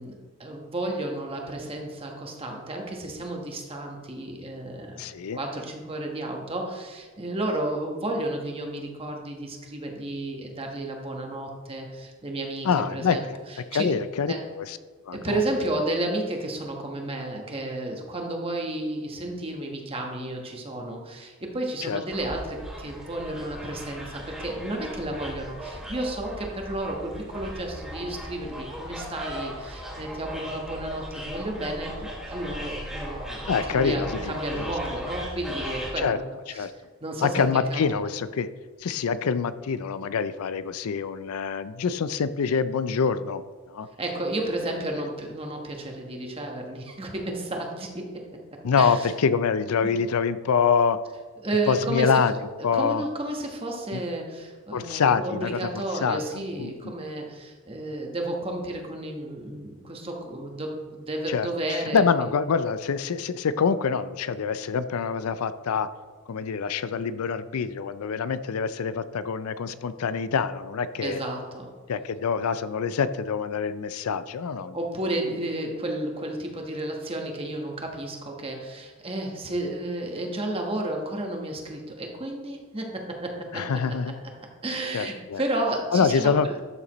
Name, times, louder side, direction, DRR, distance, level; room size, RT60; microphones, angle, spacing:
voice 1, 0.0-13.9 14.3-14.4 15.1-36.7 37.0-37.4 37.7-37.8 44.0-49.1 49.8-49.9 51.4-52.2 52.7-62.3 71.0-71.7 74.7-84.1 84.6-86.6, right 1 dB, 25° right, 1 dB, 1.2 m, -32 dB
voice 2, 5.0-5.4 12.6-13.2 13.7-14.8 15.1-15.4 21.8-22.0 33.5-34.7 36.0-36.2 36.5-36.7 37.2-38.5 38.8-43.4 43.7-43.9 45.0-45.1 48.6-51.0 51.7-52.3 52.6-53.0 53.9-54.0 54.7-55.7 56.0-56.7 61.3-65.9 66.3-71.2 71.9-74.8 83.5-84.2 84.9-85.4 85.9-86.5, left 6 dB, 90° left, 13 dB, 0.4 m, -25 dB
sound 1, 22.1-35.9, equal, 5° right, 2.4 m, -37 dB
12.5 x 6.7 x 3.1 m, 1.4 s
head